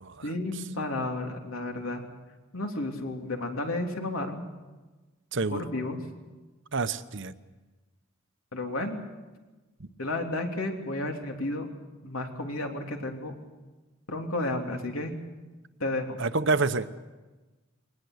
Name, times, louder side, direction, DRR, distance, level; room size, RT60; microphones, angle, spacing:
voice 1, 0.2-2.0 2.5-4.4 5.5-6.0 8.5-9.0 10.0-11.7 12.0-13.3 14.1-15.1 15.8-16.2, left 2 dB, 90° left, 3 dB, 3.3 m, -32 dB
voice 2, 5.3-5.7 6.7-7.3 16.2-16.9, right 3 dB, 60° right, 12 dB, 0.9 m, -27 dB
22.5 x 19.0 x 8.0 m, 1.2 s
head